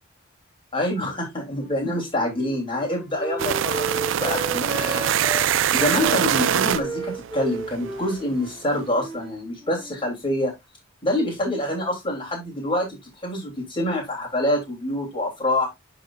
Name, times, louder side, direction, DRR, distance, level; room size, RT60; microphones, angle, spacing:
voice 1, 0.7-5.1 5.7-10.5 11.0-15.7, left 1 dB, 25° left, 3.0 m, -26 dB
Wind instrument woodwind instrument, 1.6-5.5 5.8-9.3 9.6-10.1, right 2 dB, ahead, 4.3 m, -34 dB
sound 1, 3.4-8.2, right 9 dB, 60° right, 0.4 m, -24 dB
10.0 x 4.0 x 2.5 m
head